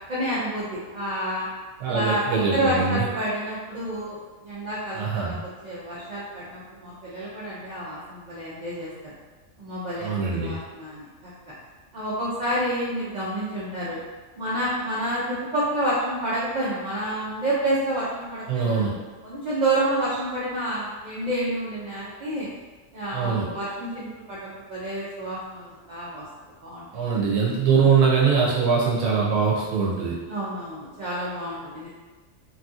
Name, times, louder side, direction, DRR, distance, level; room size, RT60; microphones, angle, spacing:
voice 1, 0.0-1.5 1.9-9.1 9.6-11.1 11.4-11.5 11.9-14.0 14.4-18.8 19.2-22.5 22.9-26.2 26.6-26.9 30.3-31.9, right 1 dB, 70° right, -8 dB, 0.4 m, -29 dB
voice 2, 1.8-3.0 4.9-5.3 10.0-10.6 18.5-18.9 23.1-23.4 26.9-30.1, right 5 dB, 85° right, -4 dB, 1.0 m, -22 dB
2.9 x 2.6 x 2.3 m, 1.3 s
omnidirectional pair, 1.4 m